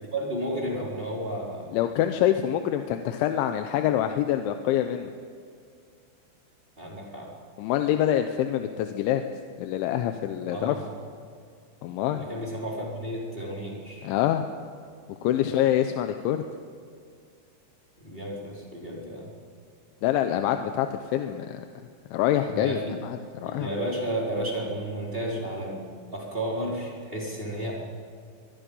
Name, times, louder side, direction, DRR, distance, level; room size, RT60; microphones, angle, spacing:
voice 1, 0.1-1.7 6.8-7.3 10.5-10.8 12.1-14.1 15.4-15.5 18.0-19.3 22.5-23.0 23.4-25.8 26.1-27.7, right 1 dB, 10° right, -4 dB, 4.2 m, -32 dB
voice 2, 1.7-5.1 7.6-9.2 9.6-10.8 11.8-12.2 14.0-14.4 15.2-16.4 20.0-21.7 22.1-23.7, left 11 dB, 80° left, 7 dB, 3.2 m, -25 dB
23.0 x 23.0 x 5.5 m, 2.2 s
omnidirectional pair, 5.5 m